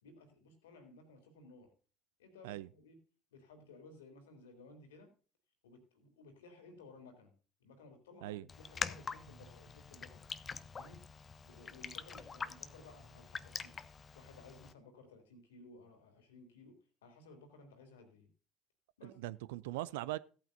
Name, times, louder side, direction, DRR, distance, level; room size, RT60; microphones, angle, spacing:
voice 1, 0.0-1.7 2.2-3.0 3.3-5.1 5.6-7.3 7.6-10.3 10.7-11.1 11.4-13.9 14.1-18.3 19.0-19.2, left 3 dB, 75° left, 2.9 m, -57 dB
Raindrop, 8.5-14.7, left 5 dB, 30° left, 0.7 m, -44 dB
voice 2, 19.0-20.2, right 16 dB, 65° right, 0.4 m, -40 dB
16.5 x 8.8 x 2.6 m
figure-of-eight pair, 65°, 0 cm